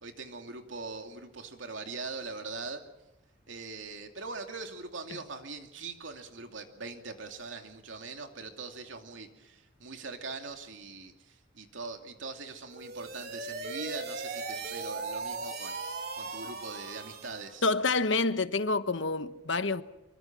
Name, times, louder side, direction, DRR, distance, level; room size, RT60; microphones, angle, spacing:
voice 1, 0.0-2.8 3.5-15.8 16.1-17.6, right 4 dB, 75° right, 2.7 m, -42 dB
sound 1, 12.7-17.5, right 3 dB, 50° right, 2.6 m, -38 dB
voice 2, 17.6-19.8, left 3 dB, 70° left, 1.1 m, -28 dB
25.0 x 24.0 x 6.2 m
head